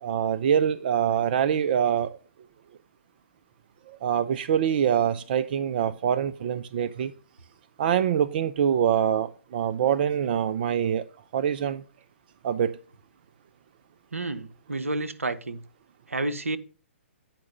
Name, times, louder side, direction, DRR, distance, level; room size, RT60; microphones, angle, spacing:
voice 1, 0.0-2.2 3.9-7.1 7.8-11.0 11.3-11.8 12.4-12.8, right 9 dB, 45° right, 0.4 m, -24 dB
voice 2, 14.1-15.6 16.1-16.6, right 2 dB, 80° right, 0.8 m, -30 dB
9.2 x 4.8 x 5.4 m
figure-of-eight pair, 125°, 7 cm